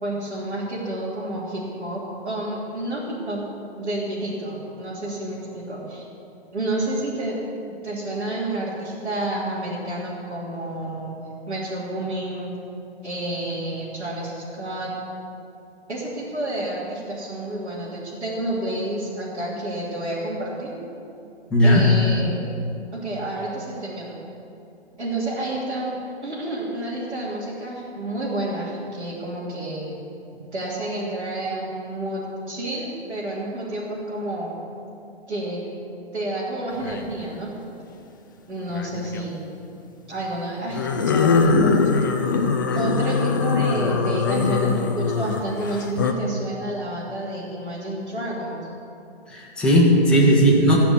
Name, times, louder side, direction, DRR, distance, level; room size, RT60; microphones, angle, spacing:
voice 1, 0.0-3.4 3.7-6.1 6.5-7.4 7.8-11.1 11.5-12.5 13.0-15.0 15.9-20.7 21.6-22.4 22.9-24.2 25.0-26.0 26.2-30.1 30.5-34.5 35.3-35.7 36.1-37.5 38.5-39.4 40.1-42.1 42.7-48.6, right 1 dB, 90° right, -8 dB, 3.4 m, -29 dB
voice 2, 21.5-21.8 49.3-50.8, equal, 5° left, -5 dB, 1.7 m, -16 dB
sound 1, 36.8-37.1 38.7-39.2 40.7-46.1, left 4 dB, 20° left, 0.4 m, -22 dB
17.5 x 5.9 x 7.1 m, 2.7 s
hypercardioid pair, 145°, 33 cm